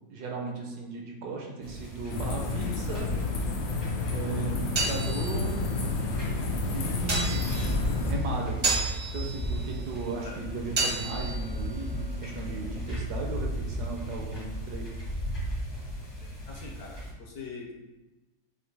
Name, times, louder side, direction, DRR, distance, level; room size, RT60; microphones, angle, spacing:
voice 1, 0.1-3.1 4.1-5.6 6.7-7.6 8.0-8.9 9.1-14.9, right 3 dB, 70° right, 0 dB, 1.1 m, -36 dB
sound 1, 1.6-17.1, equal, 25° left, 0.5 m, -36 dB
sound 2, 2.1-8.1, left 3 dB, 90° left, 1.4 m, -30 dB
sound 3, 4.4-12.9, right 3 dB, 40° right, 0.5 m, -34 dB
voice 2, 16.2-17.7, left 4 dB, 65° left, 0 dB, 1.0 m, -43 dB
6.4 x 2.5 x 3.3 m, 1.1 s
omnidirectional pair, 2.0 m